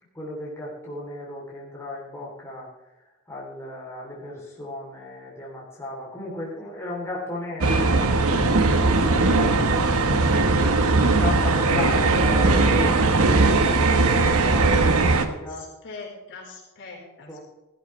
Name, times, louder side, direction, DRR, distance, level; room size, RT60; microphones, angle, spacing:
voice 1, 0.1-2.7 3.3-10.2 11.0-15.7 17.3-17.4, left 1 dB, 15° left, -5 dB, 3.1 m, -36 dB
sound 1, 7.6-15.3, right 3 dB, 70° right, 1.2 m, -19 dB
voice 2, 15.8-17.4, left 3 dB, 55° left, -2 dB, 4.3 m, -41 dB
15.5 x 13.0 x 3.2 m, 1.1 s
head